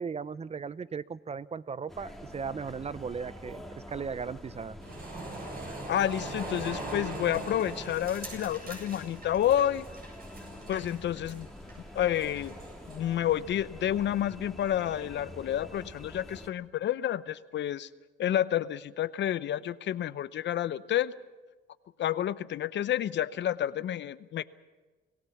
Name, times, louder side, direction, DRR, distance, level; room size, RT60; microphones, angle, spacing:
voice 1, 0.0-4.8, right 6 dB, 30° right, 18 dB, 0.6 m, -37 dB
sound 1, 1.9-16.5, left 1 dB, ahead, 2.4 m, -46 dB
sound 2, 4.8-13.0, right 2 dB, 50° right, 7.9 m, -41 dB
voice 2, 5.7-9.8 10.7-11.5 11.9-12.5 12.9-17.9 18.2-21.1 22.0-24.4, left 11 dB, 65° left, 17 dB, 0.7 m, -29 dB
26.5 x 17.0 x 7.1 m, 1.3 s
cardioid pair, 90°, 20 cm